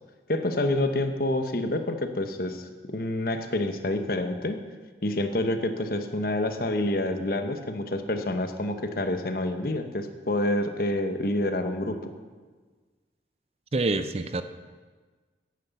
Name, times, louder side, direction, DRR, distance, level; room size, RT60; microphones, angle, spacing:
voice 1, 0.3-4.6 5.0-12.1, left 1 dB, 55° left, 7 dB, 1.0 m, -28 dB
voice 2, 13.7-14.4, right 2 dB, 35° right, 11 dB, 0.5 m, -26 dB
10.5 x 9.4 x 7.1 m, 1.4 s
head